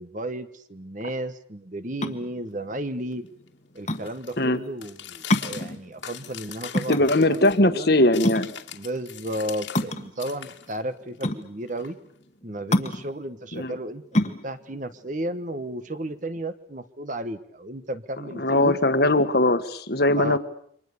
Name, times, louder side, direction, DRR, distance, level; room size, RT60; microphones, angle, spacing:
voice 1, 0.0-3.2 3.7-7.9 8.7-12.0 12.4-18.8 20.2-20.4, right 1 dB, 40° right, 11 dB, 1.3 m, -33 dB
sound 1, 1.8-16.2, left 1 dB, 35° left, 1.6 m, -29 dB
sound 2, 2.5-9.9 10.2-12.4, left 9 dB, 75° left, 2.5 m, -42 dB
voice 2, 6.9-8.5 13.5-13.7 18.4-20.4, left 1 dB, 55° left, 10 dB, 1.7 m, -20 dB
29.0 x 24.5 x 6.9 m, 0.64 s
head